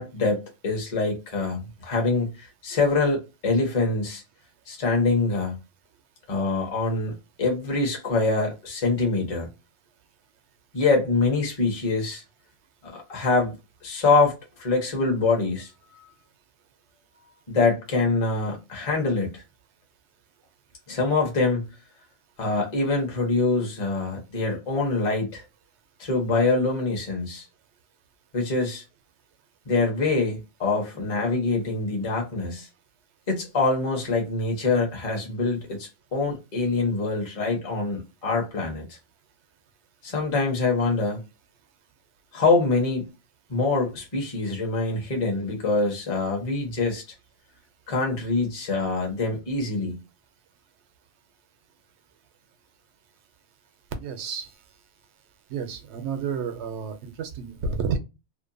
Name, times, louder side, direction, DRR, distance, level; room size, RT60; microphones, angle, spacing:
voice 1, 0.0-4.2 4.7-5.5 6.3-9.5 10.7-12.2 12.8-13.5 13.8-16.1 17.5-19.4 20.9-21.7 22.4-25.4 26.0-27.4 28.3-28.8 29.7-32.7 33.3-39.0 40.0-41.2 42.3-43.1 43.5-47.0 47.9-50.0, left 3 dB, 35° left, 0.9 m, -25 dB
voice 2, 54.0-54.5 55.5-58.0, right 5 dB, 75° right, 0.9 m, -30 dB
2.8 x 2.2 x 2.5 m
omnidirectional pair, 1.2 m